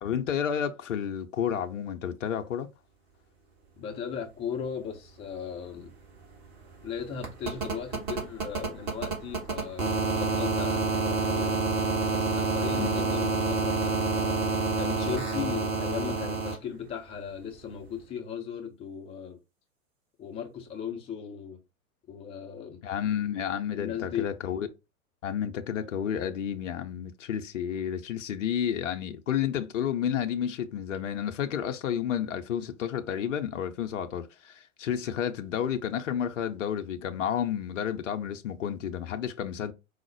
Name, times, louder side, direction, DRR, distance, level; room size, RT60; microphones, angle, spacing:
voice 1, 0.0-2.7 12.8-13.0 22.8-24.7 25.2-39.7, left 9 dB, 60° left, 0.6 m, -31 dB
voice 2, 3.8-5.9 6.8-11.5 12.1-19.4 20.2-21.6 22.1-22.8 23.7-24.3, left 7 dB, 15° left, 0.5 m, -37 dB
sound 1, 5.3-5.4 5.6-16.5 18.0-18.1, right 3 dB, 45° right, 1.7 m, -29 dB
4.8 x 2.0 x 4.4 m
figure-of-eight pair, 100°, 43 cm